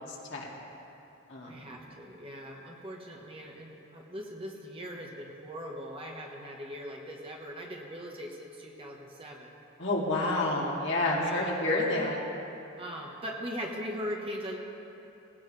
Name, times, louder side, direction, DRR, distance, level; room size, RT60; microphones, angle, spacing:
voice 1, 0.1-0.5 1.3-1.8 9.8-12.2, left 2 dB, 55° left, -3 dB, 2.4 m, -29 dB
voice 2, 1.5-9.5 10.1-10.5 11.2-11.5 12.8-14.6, equal, 25° right, 0 dB, 1.3 m, -40 dB
18.0 x 17.0 x 3.4 m, 2.9 s
head